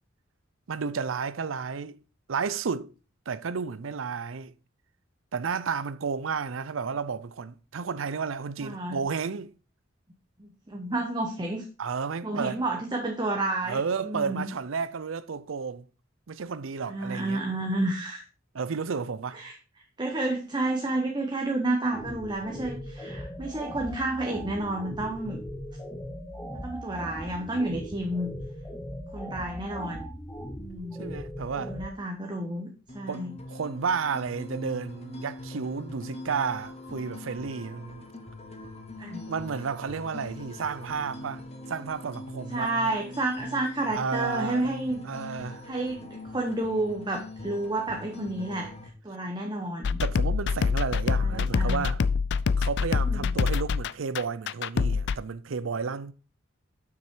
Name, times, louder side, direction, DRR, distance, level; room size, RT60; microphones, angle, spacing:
voice 1, 0.7-2.0 2.3-2.9 3.3-4.5 5.3-9.5 11.8-12.6 13.7-15.9 16.3-17.4 18.5-19.4 31.0-31.7 33.1-33.2 33.5-38.1 39.3-41.4 41.7-42.7 43.9-44.7 45.0-45.6 50.0-52.0 52.6-56.1, right 5 dB, 80° right, 0.6 m, -32 dB
voice 2, 8.6-9.0 10.4-11.7 12.2-14.5 16.9-18.2 19.3-19.5 20.0-25.4 26.5-28.3 29.1-30.1 30.6-31.2 31.6-33.3 39.0-39.3 42.5-45.4 45.6-48.7 49.0-50.0 51.2-51.9 53.0-53.3, right 2 dB, 20° right, 1.0 m, -31 dB
sound 1, 21.9-31.9, equal, 10° left, 1.0 m, -39 dB
sound 2, 32.9-48.9, left 1 dB, 35° left, 1.7 m, -42 dB
sound 3, 49.8-55.2, left 5 dB, 60° left, 0.4 m, -25 dB
7.4 x 6.2 x 4.6 m
head